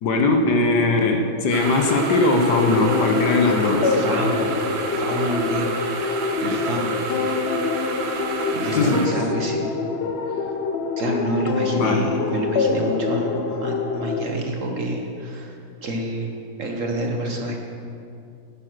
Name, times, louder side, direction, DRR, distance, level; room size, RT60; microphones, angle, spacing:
voice 1, 0.0-4.0 8.7-9.1 11.7-12.1, left 2 dB, 65° left, 4 dB, 1.4 m, -20 dB
sound 1, 1.5-9.1, right 4 dB, 90° right, 1.7 m, -30 dB
sound 2, 1.6-14.3, left 5 dB, 85° left, 0.5 m, -25 dB
voice 2, 3.9-6.9 8.5-9.6 10.3-10.5 11.0-17.6, right 1 dB, 50° right, 2 dB, 1.2 m, -28 dB
11.0 x 8.5 x 6.2 m, 2.5 s
omnidirectional pair, 2.1 m